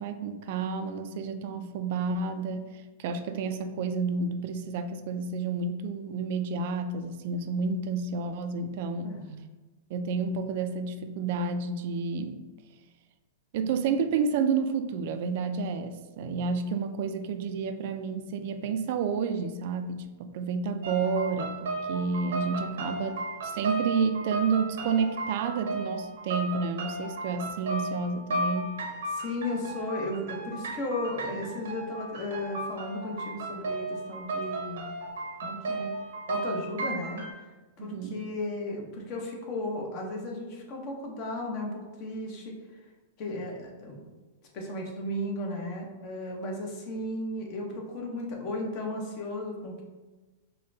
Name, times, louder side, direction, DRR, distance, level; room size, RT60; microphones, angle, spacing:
voice 1, 0.0-9.2 9.9-12.4 13.5-28.7 37.8-38.2, right 5 dB, 55° right, 8 dB, 0.3 m, -30 dB
voice 2, 9.0-9.4 29.1-34.9 35.4-35.9 36.3-37.2 37.8-42.5 43.2-44.0 44.5-49.8, left 1 dB, 40° left, 0 dB, 0.9 m, -35 dB
sound 1, 20.8-37.3, right 2 dB, 85° right, 0.8 m, -35 dB
5.4 x 2.2 x 2.7 m, 1.2 s
supercardioid pair, 145°, 0 cm